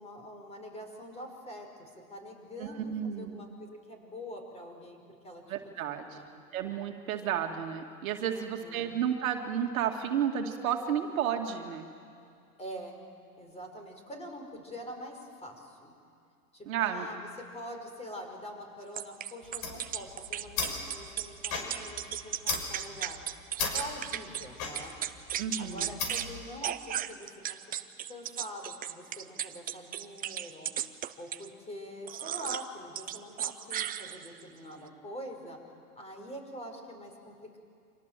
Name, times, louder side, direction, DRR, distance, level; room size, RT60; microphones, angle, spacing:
voice 1, 0.0-6.4 8.3-9.0 12.6-13.0 13.4-15.9 16.5-23.2 23.6-25.0 25.6-27.6 28.1-30.7 31.2-35.6 36.0-37.6, equal, 15° left, 4 dB, 5.4 m, -45 dB
voice 2, 2.6-3.3 5.5-6.0 6.5-11.9 16.7-17.1 25.4-25.9, right 9 dB, 60° right, 4 dB, 2.3 m, -32 dB
sound 1, 19.0-24.5 24.7-26.3 26.6-31.5 32.1-32.7 33.0-34.4, right 11 dB, 20° right, 0.8 m, -36 dB
sound 2, 19.4-26.4, left 5 dB, 45° left, 6.1 m, -37 dB
29.5 x 26.0 x 7.6 m, 2.4 s
figure-of-eight pair, 105°, 47 cm